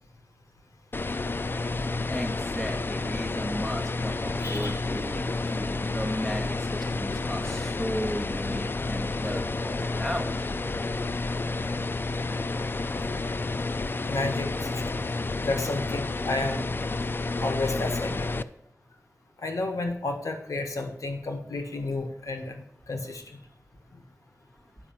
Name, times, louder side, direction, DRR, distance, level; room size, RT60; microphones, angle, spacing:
sound 1, 0.9-18.4, left 3 dB, 40° left, 0.4 m, -30 dB
voice 1, 1.8-10.5 17.0-17.1, equal, 5° left, 2 dB, 1.8 m, -35 dB
voice 2, 4.2-4.8 14.1-15.0 15.4-16.6 17.4-18.4 19.4-23.4, left 2 dB, 85° left, 5 dB, 1.5 m, -32 dB
9.9 x 5.6 x 7.3 m, 0.71 s
wide cardioid pair, 75°, 5 cm